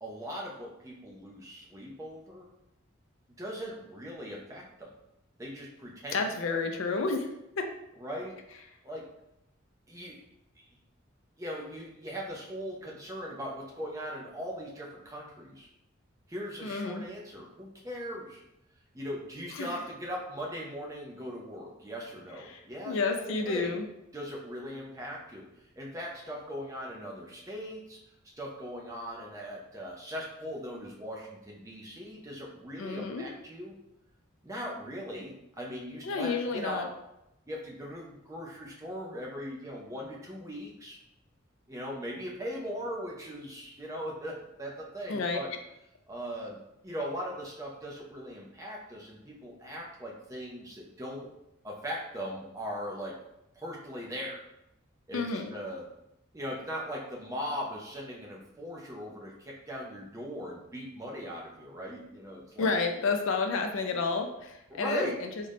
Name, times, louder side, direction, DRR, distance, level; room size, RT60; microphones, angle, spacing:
voice 1, 0.0-2.5 3.4-4.9 5.4-6.6 8.0-8.4 8.8-9.0 9.9-10.2 11.4-15.7 16.3-18.4 18.9-23.8 24.1-25.5 25.8-28.0 28.4-33.8 34.4-36.9 37.5-41.0 41.7-45.5 46.1-51.3 51.6-53.1 53.5-54.4 55.1-55.8 56.3-62.7 64.7-65.2, equal, 15° right, -2 dB, 0.5 m, -39 dB
voice 2, 6.1-7.3 7.6-7.7 16.6-17.0 19.6-19.7 22.5-22.6 22.9-23.9 32.8-33.2 36.0-36.9 45.1-45.4 55.1-55.5 62.6-65.3, left 4 dB, 75° left, 5 dB, 0.4 m, -30 dB
3.7 x 2.1 x 3.3 m, 0.84 s
head